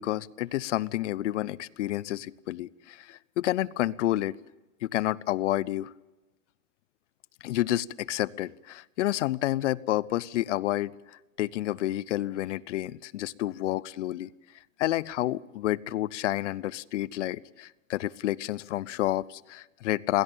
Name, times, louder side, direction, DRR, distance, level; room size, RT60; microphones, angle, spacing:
voice 1, 0.0-4.4 4.8-5.9 7.4-10.9 11.4-14.3 14.8-20.2, left 15 dB, 65° left, 23 dB, 0.7 m, -29 dB
21.5 x 16.5 x 8.8 m, 1.1 s
hypercardioid pair, 145°, 38 cm